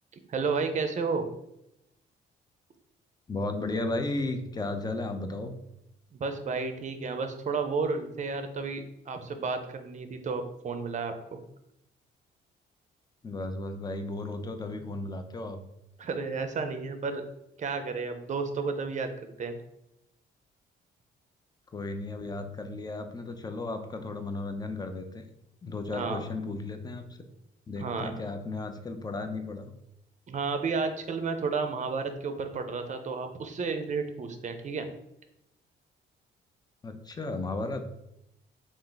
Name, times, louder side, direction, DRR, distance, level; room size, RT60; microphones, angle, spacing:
voice 1, 0.3-1.3 6.1-11.4 16.0-17.2 17.6-19.5 25.9-26.2 27.8-28.1 30.3-34.9, right 4 dB, 40° right, 7 dB, 0.5 m, -32 dB
voice 2, 3.3-5.5 13.2-15.6 21.7-25.3 25.6-27.1 27.7-29.7 36.8-38.0, left 2 dB, 20° left, 7 dB, 0.5 m, -34 dB
3.6 x 2.5 x 3.8 m, 0.84 s
cardioid pair, 90°, 20 cm